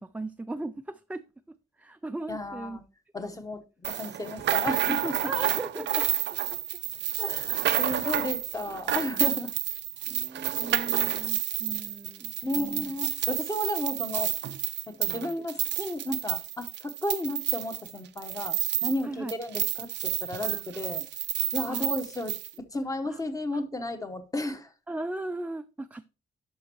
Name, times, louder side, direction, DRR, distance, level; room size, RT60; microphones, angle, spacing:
voice 1, 0.0-2.8 3.2-3.3 5.2-6.1 10.1-12.9 15.1-15.4 19.0-19.3 20.4-20.6 21.0-21.1 21.7-21.9 23.0-23.2 23.5-23.6 24.9-26.1, right 2 dB, 10° right, 0.3 m, -38 dB
voice 2, 2.3-2.8 3.1-5.3 7.2-9.5 10.1-10.2 10.6-10.7 12.4-14.3 14.9-21.0 21.5-24.7, left 1 dB, 20° left, 1.0 m, -33 dB
sound 1, 3.8-19.0 19.3-22.5, right 13 dB, 90° right, 0.5 m, -30 dB
11.5 x 5.4 x 2.9 m
cardioid pair, 110°, 18 cm